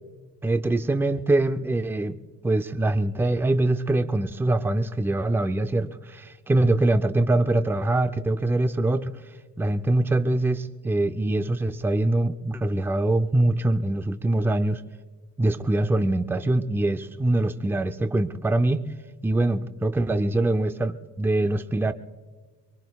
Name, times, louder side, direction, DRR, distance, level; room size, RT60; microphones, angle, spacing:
voice 1, 0.4-2.2 2.4-9.2 9.6-14.8 15.4-18.9 19.2-21.9, right 2 dB, 5° right, 0.5 m, -23 dB
24.0 x 23.0 x 2.3 m
cardioid pair, 135°, 31 cm